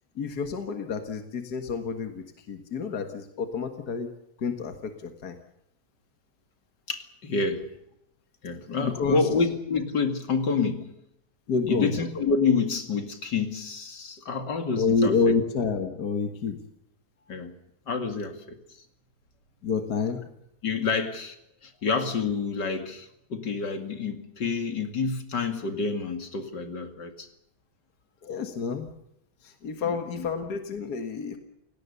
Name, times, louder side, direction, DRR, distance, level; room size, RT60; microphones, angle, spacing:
voice 1, 0.2-4.1 4.4-5.4 8.8-9.2 11.5-11.9 14.8-16.7 19.6-20.3 28.2-28.9 29.4-31.4, left 5 dB, 65° left, 6 dB, 2.2 m, -28 dB
voice 2, 6.9-7.7 8.4-10.9 11.7-15.3 17.3-17.5 17.9-18.6 20.6-21.4 21.6-27.3 29.8-30.3, left 4 dB, 85° left, 7 dB, 2.9 m, -28 dB
29.0 x 17.5 x 6.9 m, 0.80 s
omnidirectional pair, 1.8 m